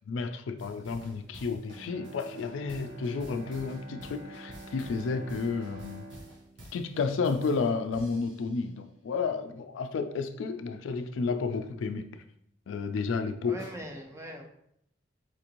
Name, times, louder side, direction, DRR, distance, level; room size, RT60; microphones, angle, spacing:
voice 1, 0.1-6.0 6.7-12.1 12.7-13.6, left 4 dB, 85° left, 8 dB, 0.4 m, -31 dB
sound 1, 0.6-8.8 13.6-13.7, equal, 65° right, 0.9 m, -51 dB
Bowed string instrument, 1.7-7.9 8.3-8.4, right 3 dB, 85° right, 1.3 m, -48 dB
voice 2, 13.4-14.4, equal, 15° right, 2 dB, 0.4 m, -41 dB
4.4 x 2.5 x 2.9 m, 0.72 s
head